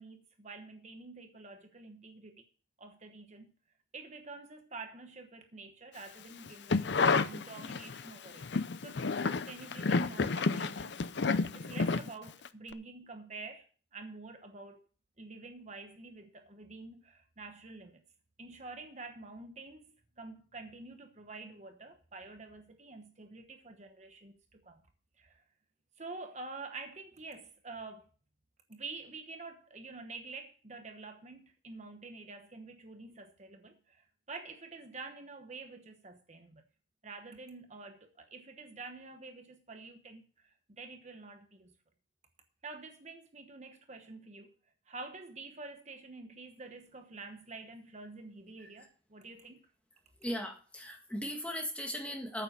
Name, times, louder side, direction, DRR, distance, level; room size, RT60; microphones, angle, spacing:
voice 1, 0.0-2.4 2.8-3.5 3.9-8.4 8.8-14.8 15.2-18.0 18.4-24.8 25.2-25.4 26.0-28.1 28.7-36.6 37.0-41.7 42.6-44.6 44.9-49.6, right 3 dB, 35° right, 1.1 m, -48 dB
sound 1, 6.5-8.0 8.4-12.5 12.7-12.8, left 4 dB, 60° left, 0.6 m, -30 dB
voice 2, 50.2-52.4, equal, 5° left, 1.7 m, -38 dB
9.0 x 7.5 x 6.6 m
head